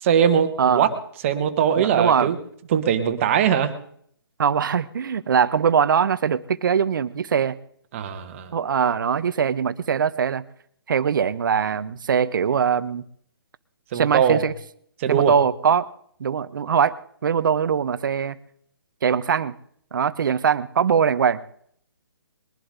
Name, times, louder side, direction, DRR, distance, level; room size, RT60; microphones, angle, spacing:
voice 1, 0.0-0.9 1.2-2.4 2.7-3.7 7.9-8.5 13.9-14.4 15.0-15.3, right 8 dB, 35° right, 8 dB, 1.5 m, -21 dB
voice 2, 1.8-2.3 4.4-7.6 8.5-10.4 10.9-13.0 13.9-14.5 15.1-15.9 16.2-17.0 17.2-18.4 19.0-19.5 19.9-21.4, right 7 dB, 55° right, 16 dB, 0.8 m, -21 dB
21.5 x 11.0 x 3.8 m, 0.63 s
hypercardioid pair, 150°, 13 cm